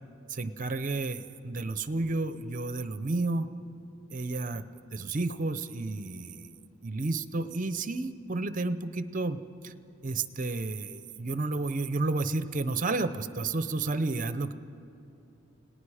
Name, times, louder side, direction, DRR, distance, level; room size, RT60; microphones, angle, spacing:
voice 1, 0.3-3.5 4.1-4.6 4.9-9.7 10.0-14.5, right 3 dB, 40° right, 12 dB, 0.7 m, -31 dB
29.5 x 19.0 x 4.9 m, 2.9 s
head